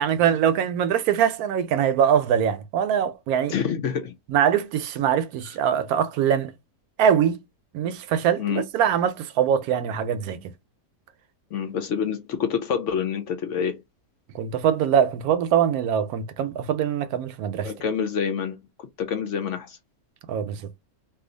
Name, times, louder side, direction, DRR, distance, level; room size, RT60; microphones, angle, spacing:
voice 1, 0.0-3.5 4.3-6.5 7.0-7.4 7.7-10.5 14.3-17.7 20.3-20.7, right 8 dB, 80° right, 1.1 m, -23 dB
voice 2, 3.5-4.1 8.4-8.6 11.5-13.8 17.6-18.6 19.0-19.8, left 7 dB, 65° left, 0.8 m, -27 dB
2.7 x 2.4 x 3.8 m
omnidirectional pair, 1.6 m